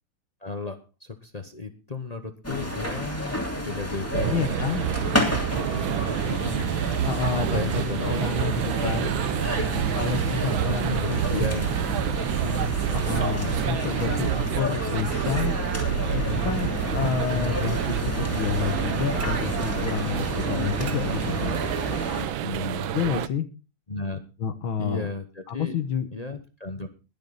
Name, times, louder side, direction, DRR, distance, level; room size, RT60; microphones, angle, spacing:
voice 1, 0.4-3.4 3.7-5.2 5.5-5.9 6.2-6.7 7.3-8.7 9.4-9.9 10.5-11.7 12.4-12.7 14.2-14.5 16.2-16.6 17.2-17.7 20.4-20.6 22.2-22.9 23.9-24.2 24.8-25.8 26.1-26.9, left 3 dB, 45° left, 7 dB, 0.5 m, -35 dB
sound 1, 2.4-22.2, equal, 5° left, 2.7 m, -31 dB
sound 2, 4.1-23.3, right 11 dB, 70° right, 1.5 m, -28 dB
voice 2, 4.3-4.8 7.0-9.2 9.9-11.5 12.9-14.3 14.6-15.5 16.1-21.6 22.9-23.5 24.4-25.1 25.5-26.1, left 7 dB, 70° left, 10 dB, 2.0 m, -29 dB
21.0 x 7.2 x 4.0 m, 0.31 s
omnidirectional pair, 2.4 m